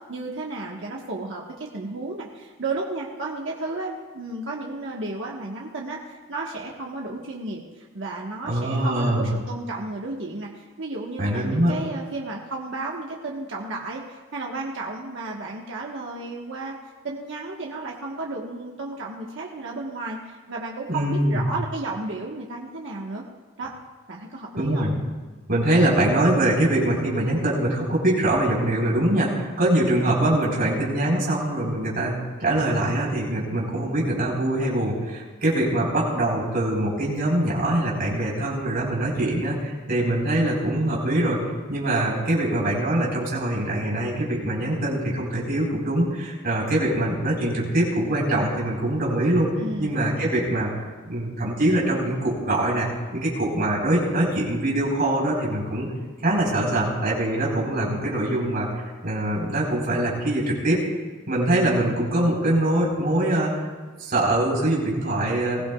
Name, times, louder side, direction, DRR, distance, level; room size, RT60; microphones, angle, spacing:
voice 1, 0.1-16.8 17.0-23.2 23.6-23.7 24.1-24.9 49.6-50.0, right 2 dB, 65° right, -2 dB, 1.3 m, -33 dB
voice 2, 8.4-9.3 11.2-11.8 20.9-21.5 24.6-24.9 25.5-32.1 32.4-41.4 41.7-49.5 49.8-55.9 56.2-60.8 61.3-63.6 64.0-65.6, right 1 dB, 45° right, -4 dB, 4.3 m, -23 dB
21.0 x 16.0 x 2.4 m, 1.3 s
head